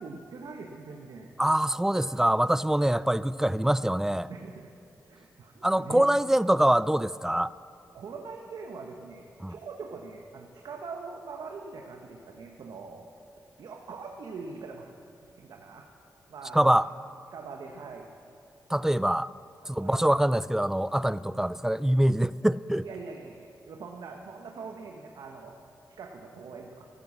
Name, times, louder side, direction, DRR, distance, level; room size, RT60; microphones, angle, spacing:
voice 1, 0.0-1.3 4.3-4.7 5.0-6.1 7.9-13.0 13.6-14.9 15.4-15.9 16.3-16.8 17.3-18.1 19.8-20.1 22.8-25.5 26.0-26.9, right 4 dB, 75° right, 2 dB, 1.1 m, -42 dB
voice 2, 1.4-4.3 5.6-7.5 9.4-9.5 16.5-16.9 18.7-19.3 19.7-22.9, right 1 dB, 5° right, 18 dB, 0.4 m, -24 dB
12.5 x 12.5 x 7.3 m, 2.5 s
cardioid pair, 55°, 7 cm